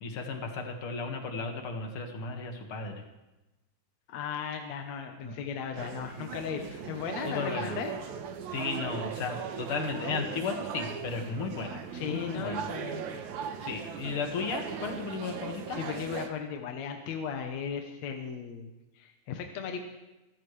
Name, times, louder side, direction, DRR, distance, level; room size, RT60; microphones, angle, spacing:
voice 1, 0.0-3.0 5.2-5.3 7.3-7.8 8.5-13.0 13.6-15.8, left 4 dB, 50° left, 3 dB, 2.5 m, -35 dB
voice 2, 4.1-7.9 11.9-13.3 15.7-19.8, left 7 dB, 70° left, 4 dB, 2.2 m, -36 dB
sound 1, 5.7-16.3, right 7 dB, 75° right, 2.4 m, -38 dB
23.5 x 14.0 x 3.3 m, 1.0 s
omnidirectional pair, 3.5 m